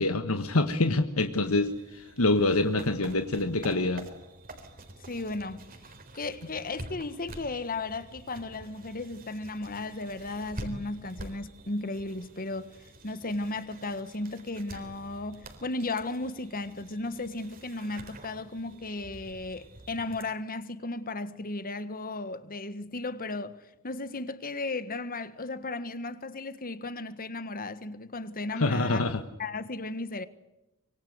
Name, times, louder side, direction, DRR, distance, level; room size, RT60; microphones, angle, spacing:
voice 1, 0.0-4.1 28.5-29.2, left 2 dB, 70° left, 1.5 m, -26 dB
sound 1, 1.4-20.2, right 1 dB, 40° right, 3.9 m, -47 dB
voice 2, 5.1-5.7 6.1-29.0 29.4-30.3, left 2 dB, 40° left, 1.5 m, -35 dB
25.0 x 24.0 x 8.1 m
head